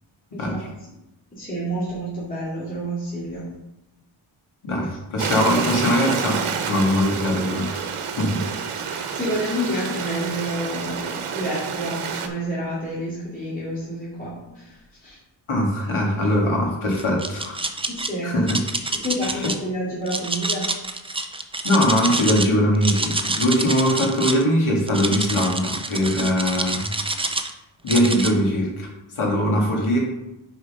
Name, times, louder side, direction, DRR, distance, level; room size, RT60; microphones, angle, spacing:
voice 1, 1.3-3.5 8.3-8.4 8.8-15.2 17.9-18.4 19.0-20.7, equal, 15° left, -9 dB, 2.4 m, -29 dB
voice 2, 4.6-7.8 8.2-8.4 15.5-17.6 18.2-18.6 19.2-19.5 21.6-26.9 27.8-28.9 29.2-30.0, equal, 75° left, -1 dB, 2.2 m, -21 dB
Stream, 5.2-12.3, right 6 dB, 85° right, 0.9 m, -28 dB
sound 1, 16.9-18.1 18.5-19.6 20.1-22.5 22.7-24.4 24.9-27.5 27.9-28.3, right 2 dB, 10° right, 0.4 m, -27 dB
6.6 x 4.7 x 5.5 m, 0.92 s
wide cardioid pair, 160°, 49 cm